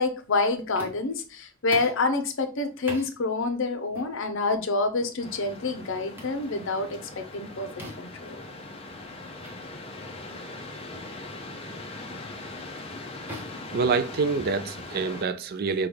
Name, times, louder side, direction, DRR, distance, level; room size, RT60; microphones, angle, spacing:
voice 1, 0.0-7.7 8.0-8.4, left 3 dB, 65° left, 0.7 m, -27 dB
sound 1, 0.7-1.2 1.7-2.1 2.9-3.1 3.9-4.1 5.0-5.2 6.2-6.4 7.8-8.2 9.4-9.6 10.0-10.2 10.9-11.2 12.1-12.3 13.3-14.5, equal, 10° right, 1.0 m, -42 dB
sound 2, 5.2-15.2, left 2 dB, 30° left, 0.6 m, -40 dB
voice 2, 13.7-15.9, right 4 dB, 50° right, 0.4 m, -26 dB
5.7 x 2.3 x 3.3 m
head